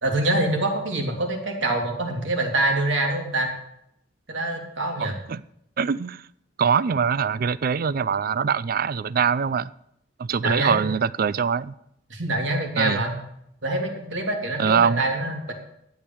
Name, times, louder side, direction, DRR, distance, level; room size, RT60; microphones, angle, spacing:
voice 1, 0.0-3.5 4.3-5.2 10.4-10.9 12.1-13.1 13.6-15.5, right 2 dB, 75° right, 1 dB, 2.9 m, -25 dB
voice 2, 5.0-5.4 5.8-6.3 6.6-9.7 10.2-11.7 12.8-13.0 14.6-15.0, right 6 dB, 50° right, 19 dB, 0.4 m, -23 dB
12.0 x 8.6 x 7.0 m, 0.75 s
head